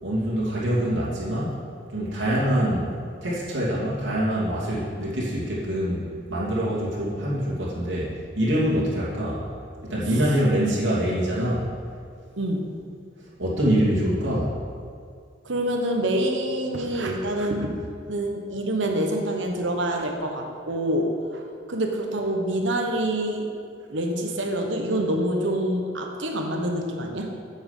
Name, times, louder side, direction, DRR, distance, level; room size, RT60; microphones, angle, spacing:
voice 1, 0.0-1.6 1.9-2.9 3.2-9.4 9.8-11.6 13.4-14.5, equal, 85° right, -7 dB, 2.6 m, -25 dB
voice 2, 12.4-12.7 15.4-17.8 18.1-21.4 21.7-23.5 23.9-27.3, right 1 dB, 70° right, 3 dB, 1.3 m, -26 dB
9.2 x 7.4 x 5.7 m, 2.3 s
head